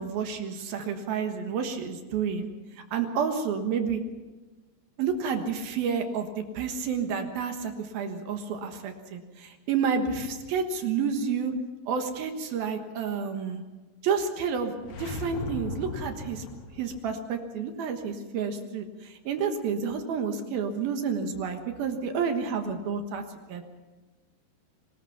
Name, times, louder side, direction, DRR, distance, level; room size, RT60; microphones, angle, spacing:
voice 1, 0.0-2.5 2.9-4.0 5.0-11.5 11.9-13.6 14.0-14.7 15.0-16.5 16.7-23.2 23.5-23.6, right 6 dB, 65° right, 5 dB, 2.8 m, -30 dB
sound 1, 14.8-17.0, left 3 dB, 70° left, 1.6 m, -37 dB
24.0 x 19.5 x 5.9 m, 1.2 s
omnidirectional pair, 5.4 m